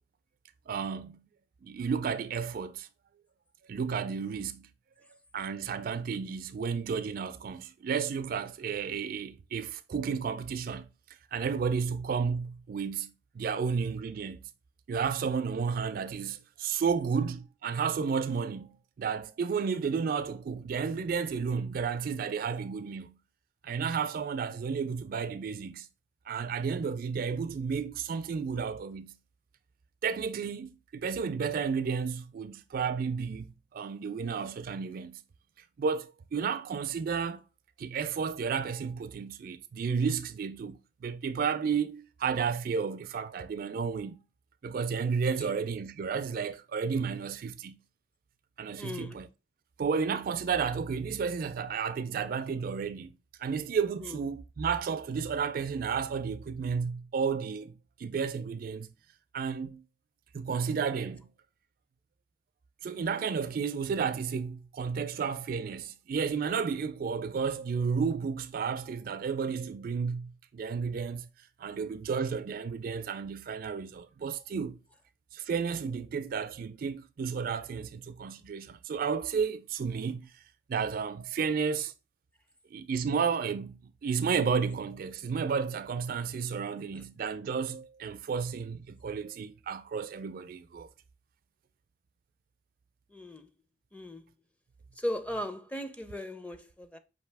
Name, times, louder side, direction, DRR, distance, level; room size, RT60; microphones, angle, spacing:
voice 1, 0.7-1.2 1.6-2.9 3.7-4.7 5.3-10.9 11.3-14.5 14.9-18.7 19.0-23.2 23.6-25.9 26.3-29.1 30.0-35.2 35.8-37.4 37.8-44.2 44.6-47.8 48.6-49.3 49.8-53.1 53.4-57.7 58.0-58.9 59.3-59.8 60.3-61.3 62.8-71.3 71.6-74.8 75.3-80.3 80.7-81.9 82.7-90.9, right 6 dB, 55° right, 0.3 m, -32 dB
voice 2, 45.2-45.5 48.8-49.2 54.0-54.2 87.0-87.1 93.1-93.5 93.9-94.3 95.0-97.0, left 1 dB, 10° left, 0.5 m, -38 dB
5.4 x 2.7 x 3.3 m
head